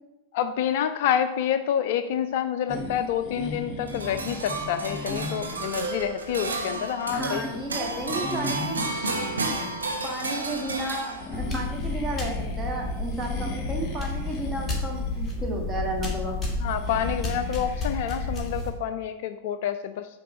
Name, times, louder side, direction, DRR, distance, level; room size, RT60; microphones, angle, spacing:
voice 1, 0.3-7.4 16.6-20.1, left 9 dB, 50° left, 10 dB, 0.3 m, -28 dB
sound 1, 2.7-18.5, left 2 dB, 35° left, 1.1 m, -39 dB
sound 2, 3.9-11.6, right 3 dB, 75° right, 0.8 m, -32 dB
voice 2, 7.1-8.8 10.0-16.4, right 1 dB, 15° right, 0 dB, 1.4 m, -33 dB
sound 3, 11.3-18.7, left 2 dB, 10° left, 1.5 m, -31 dB
7.6 x 3.2 x 5.0 m, 1.0 s
figure-of-eight pair, 90°, 0 cm